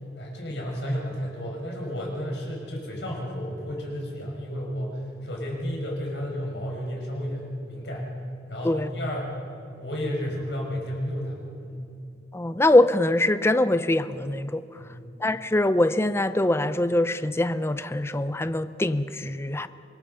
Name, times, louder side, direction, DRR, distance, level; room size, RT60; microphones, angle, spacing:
voice 1, 0.2-8.1 8.5-9.4 9.7-11.8 14.8-15.2, equal, 80° left, -1 dB, 6.0 m, -32 dB
voice 2, 12.3-14.6 15.2-19.7, left 1 dB, 15° left, 12 dB, 0.5 m, -23 dB
25.0 x 22.0 x 5.6 m, 2.7 s
head